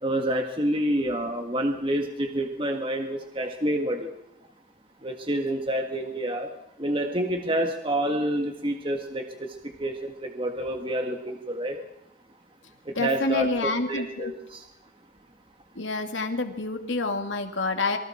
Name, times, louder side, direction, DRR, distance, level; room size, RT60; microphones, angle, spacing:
voice 1, 0.0-4.1 5.0-6.5 6.8-11.8 12.9-14.7, right 1 dB, 25° right, 4 dB, 1.8 m, -28 dB
voice 2, 13.0-14.3 15.7-18.0, left 2 dB, 65° left, 5 dB, 2.6 m, -28 dB
28.0 x 24.0 x 4.5 m, 0.84 s
head